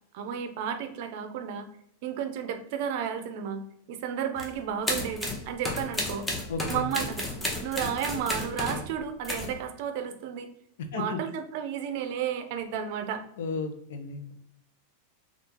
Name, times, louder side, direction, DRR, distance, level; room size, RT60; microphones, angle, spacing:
voice 1, 0.1-1.7 2.0-6.3 6.7-7.3 7.6-10.5 10.9-13.2, right 8 dB, 55° right, 7 dB, 0.5 m, -32 dB
sound 1, 4.4-4.5 4.9-8.9 9.2-9.5, left 1 dB, 10° left, 0.6 m, -32 dB
voice 2, 6.5-6.9 10.9-11.2 13.4-14.2, left 4 dB, 75° left, 6 dB, 0.5 m, -33 dB
2.8 x 2.4 x 3.6 m, 0.73 s
supercardioid pair, 150°, 0 cm